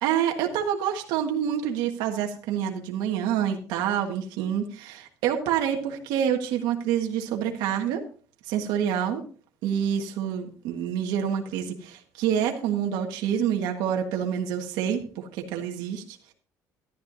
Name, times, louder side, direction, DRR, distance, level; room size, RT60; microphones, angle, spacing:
voice 1, 0.0-8.0 8.5-9.2 9.6-16.3, right 9 dB, 85° right, 2 dB, 1.5 m, -27 dB
14.0 x 11.0 x 2.7 m, 0.42 s
cardioid pair, 110°, 7 cm